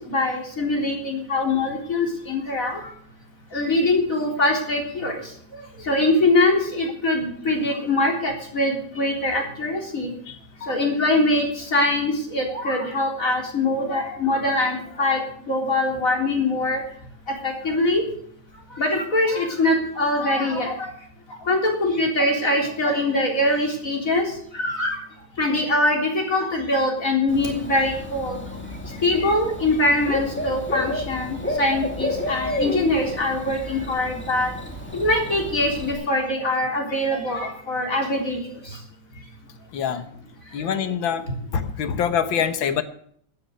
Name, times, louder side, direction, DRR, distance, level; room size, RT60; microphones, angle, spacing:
voice 1, 0.1-2.8 3.5-5.1 5.9-10.1 10.7-11.4 11.7-15.2 15.5-16.8 17.4-18.0 18.8-20.9 21.5-24.2 24.6-25.0 25.4-28.4 29.0-34.5 34.9-38.4, left 2 dB, 40° left, 0 dB, 4.1 m, -23 dB
voice 2, 10.3-10.8 39.7-40.1 40.5-41.3 41.5-42.8, left 8 dB, 80° left, 10 dB, 1.9 m, -25 dB
Bird / Cricket, 27.3-35.9, left 1 dB, 5° left, 2.0 m, -31 dB
14.0 x 10.5 x 6.7 m, 0.64 s
omnidirectional pair, 2.1 m